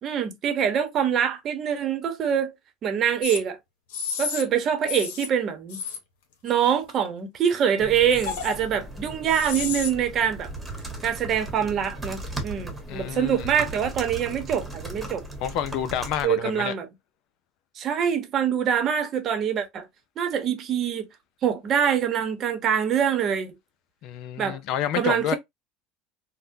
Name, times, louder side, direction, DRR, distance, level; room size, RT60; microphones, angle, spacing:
voice 1, 0.0-2.5 2.8-3.6 4.2-5.8 6.4-10.5 11.0-15.2 16.2-16.9 17.8-19.9 20.2-21.1 21.4-23.6 24.4-24.6 25.0-25.4, right 8 dB, 45° right, 0.8 m, -24 dB
sound 1, 3.2-3.4 3.9-4.4 4.9-5.3 5.7-6.0 6.5-7.1 8.1-8.6 9.3-9.9, left 6 dB, 80° left, 0.8 m, -31 dB
sound 2, 7.8-16.2, right 2 dB, 10° right, 1.2 m, -37 dB
voice 2, 12.9-13.7 15.4-16.7 24.0-25.4, left 9 dB, 60° left, 0.4 m, -29 dB
3.6 x 2.1 x 2.7 m
supercardioid pair, 105°, 0 cm